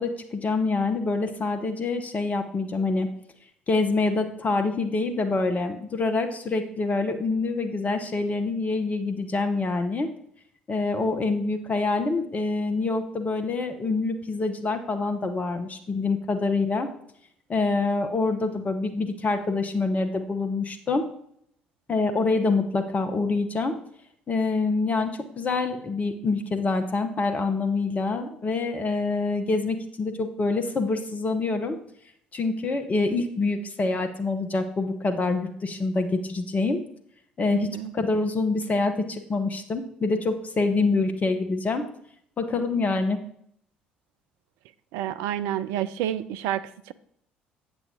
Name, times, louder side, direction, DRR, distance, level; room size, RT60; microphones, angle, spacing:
voice 1, 0.0-3.1 3.7-10.1 10.7-16.9 17.5-21.0 21.9-23.7 24.3-31.8 32.3-36.8 37.4-41.8 42.4-43.2, left 3 dB, 30° left, 6 dB, 0.9 m, -26 dB
voice 2, 37.5-37.9 44.9-46.9, right 11 dB, 60° right, 13 dB, 0.4 m, -29 dB
8.0 x 7.2 x 3.8 m, 0.67 s
figure-of-eight pair, 50°, 5 cm